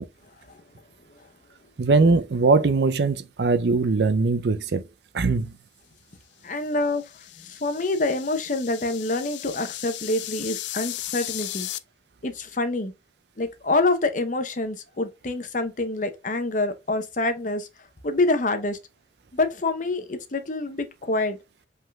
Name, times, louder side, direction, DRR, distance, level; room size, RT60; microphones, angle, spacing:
voice 1, 1.8-4.8 5.1-5.5, right 3 dB, 70° right, 0.5 m, -21 dB
voice 2, 6.4-11.7 12.2-12.9 13.4-17.7 18.0-18.8 19.3-21.4, left 2 dB, 45° left, 0.8 m, -26 dB
sound 1, 6.7-11.8, left 14 dB, 80° left, 0.4 m, -36 dB
5.4 x 3.7 x 2.3 m
head